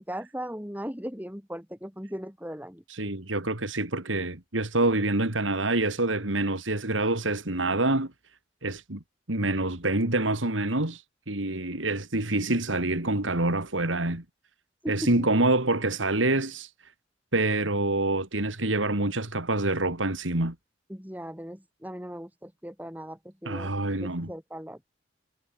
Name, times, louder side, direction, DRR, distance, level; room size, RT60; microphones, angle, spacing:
voice 1, 0.0-2.8 14.8-15.3 20.9-23.7 24.0-24.8, equal, 10° right, 5.9 m, -38 dB
voice 2, 2.9-8.1 8.6-9.0 9.3-11.0 11.3-14.2 14.9-16.7 17.3-20.5 23.4-24.3, right 2 dB, 90° right, 3.2 m, -26 dB
head